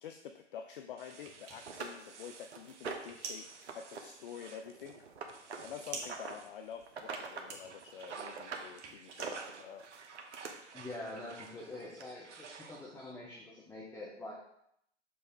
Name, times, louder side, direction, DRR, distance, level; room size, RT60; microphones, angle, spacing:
voice 1, 0.0-3.5 3.7-5.0 5.6-9.9, left 8 dB, 50° left, 6 dB, 0.6 m, -48 dB
sound 1, 1.0-7.2 7.5-13.1, right 5 dB, 80° right, 0.7 m, -54 dB
sound 2, 1.1-10.0, right 4 dB, 30° right, 1.1 m, -49 dB
sound 3, 1.1-1.2 1.7-3.2 3.6-4.0 4.3-6.4 6.9-7.5 7.8-8.7 9.1-10.5 11.5-11.6 12.0-12.1, right 5 dB, 65° right, 1.1 m, -43 dB
voice 2, 10.7-14.3, left 2 dB, 5° left, -4 dB, 0.8 m, -45 dB
6.8 x 3.4 x 5.3 m, 0.74 s
figure-of-eight pair, 120°, 35 cm